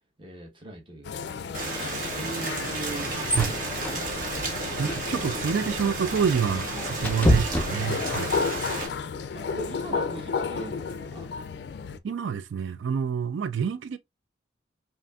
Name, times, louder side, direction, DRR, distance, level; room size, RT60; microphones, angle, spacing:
voice 1, 0.2-4.1 9.3-11.3, right 2 dB, 25° right, 1.0 m, -41 dB
sound 1, 1.0-12.0, left 5 dB, 65° left, 0.3 m, -33 dB
Rain, 1.5-8.9, right 2 dB, 45° right, 1.2 m, -32 dB
sound 2, 2.6-8.3, left 1 dB, 10° left, 0.5 m, -30 dB
voice 2, 4.8-8.3 12.0-14.0, right 7 dB, 80° right, 0.3 m, -27 dB
5.2 x 2.5 x 2.3 m
head